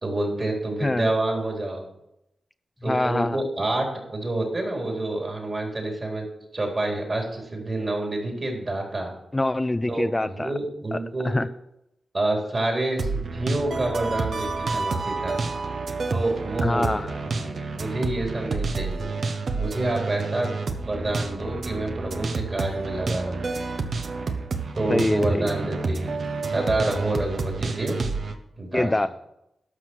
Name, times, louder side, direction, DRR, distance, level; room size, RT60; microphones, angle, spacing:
voice 1, 0.0-1.8 2.8-6.2 6.5-9.1 9.9-11.4 12.1-15.4 16.1-19.0 19.6-20.6 20.9-23.4 24.7-26.1 26.5-28.0 28.6-28.9, right 2 dB, 45° right, 1 dB, 4.1 m, -28 dB
voice 2, 2.8-3.4 9.3-10.5 10.9-11.0 11.2-11.5 16.6-17.1 24.9-25.4 28.7-29.1, left 2 dB, 20° left, 12 dB, 0.4 m, -24 dB
sound 1, 13.0-28.3, right 3 dB, 70° right, 1.0 m, -29 dB
11.5 x 6.2 x 6.3 m, 0.85 s
cardioid pair, 55°, 0 cm